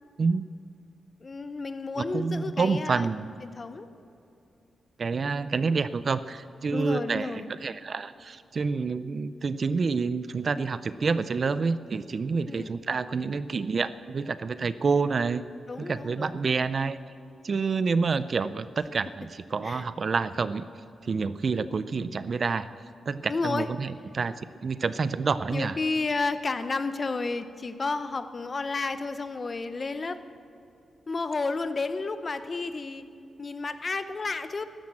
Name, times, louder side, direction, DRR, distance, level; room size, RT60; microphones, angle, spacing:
voice 1, 1.2-3.1 3.6-3.9 6.7-7.5 12.5-12.8 15.7-16.4 19.6-19.9 23.3-23.7 25.5-30.2 31.1-33.1 33.4-34.6, left 3 dB, 30° left, 11 dB, 0.7 m, -31 dB
voice 2, 2.0-3.3 5.0-15.4 15.8-17.0 17.4-20.7 21.0-22.7 23.1-24.3 24.6-25.8, right 4 dB, 40° right, 14 dB, 0.4 m, -28 dB
13.5 x 11.5 x 7.4 m, 2.7 s
wide cardioid pair, 155°, 0 cm